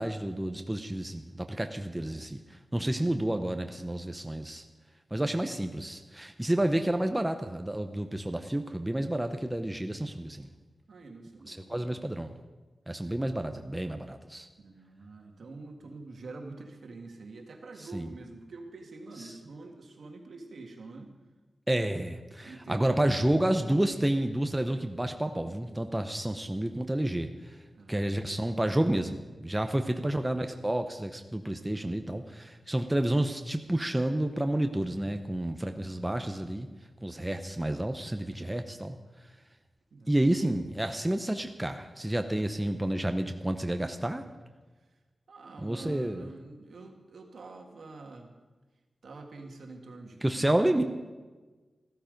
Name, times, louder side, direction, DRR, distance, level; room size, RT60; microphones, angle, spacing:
voice 1, 0.0-2.4 2.7-4.6 5.1-10.5 11.5-12.3 12.9-14.5 17.8-18.1 19.2-19.3 21.7-27.6 27.9-36.7 37.0-39.0 40.1-44.2 45.6-46.3 50.2-50.8, right 1 dB, 10° right, 6 dB, 0.7 m, -30 dB
voice 2, 10.9-12.0 14.6-21.1 22.4-23.2 27.7-28.5 29.6-30.0 39.9-40.5 45.3-48.3 49.0-50.5, right 3 dB, 70° right, 3 dB, 1.9 m, -46 dB
15.0 x 13.0 x 5.2 m, 1.3 s
wide cardioid pair, 140°, 0 cm